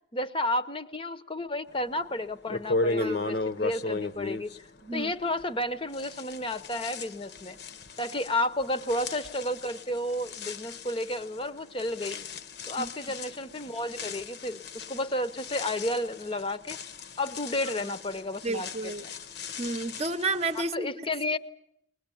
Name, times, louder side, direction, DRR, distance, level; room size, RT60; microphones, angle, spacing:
voice 1, 0.1-4.5 4.9-7.6 8.0-12.3 12.7-16.8 17.2-18.7 19.0-19.1 20.5-21.4, left 1 dB, 25° left, 10 dB, 0.8 m, -32 dB
sound 1, 1.9-2.0 2.5-5.6 5.9-20.7, left 3 dB, 55° left, 1.0 m, -36 dB
voice 2, 3.0-3.4 4.8-5.1 12.8-12.9 17.8-17.9 18.4-19.0 19.6-21.1, right 2 dB, 35° right, 9 dB, 0.8 m, -32 dB
21.0 x 21.0 x 9.1 m, 0.77 s
head